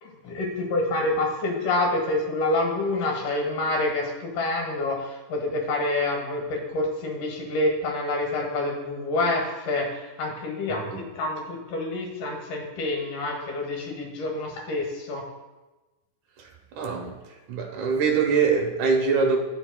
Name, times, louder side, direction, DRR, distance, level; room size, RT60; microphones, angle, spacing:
voice 1, 0.0-15.2, left 2 dB, 80° left, 0 dB, 2.9 m, -27 dB
voice 2, 10.7-11.0 16.4-17.2 17.5-19.4, right 5 dB, 75° right, 2 dB, 2.4 m, -24 dB
11.0 x 7.0 x 2.2 m, 1.1 s
omnidirectional pair, 3.6 m